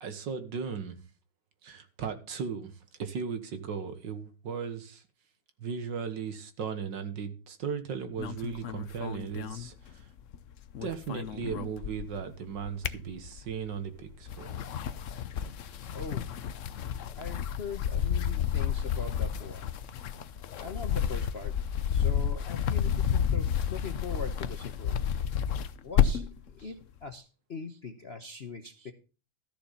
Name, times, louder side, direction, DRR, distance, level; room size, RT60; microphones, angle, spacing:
voice 1, 0.0-1.0 1.6-2.7 3.0-5.0 5.6-10.1 10.8-14.6 28.8-28.9, right 6 dB, 60° right, 1.9 m, -37 dB
sound 1, 8.2-10.4 10.6-12.2 12.6-13.6 14.2-26.4, left 8 dB, 75° left, 0.7 m, -31 dB
voice 2, 15.9-16.3 17.2-19.7 20.6-21.5 21.9-25.0 25.8-26.3 26.6-28.9, left 4 dB, 45° left, 0.9 m, -41 dB
13.5 x 6.8 x 5.6 m
omnidirectional pair, 2.3 m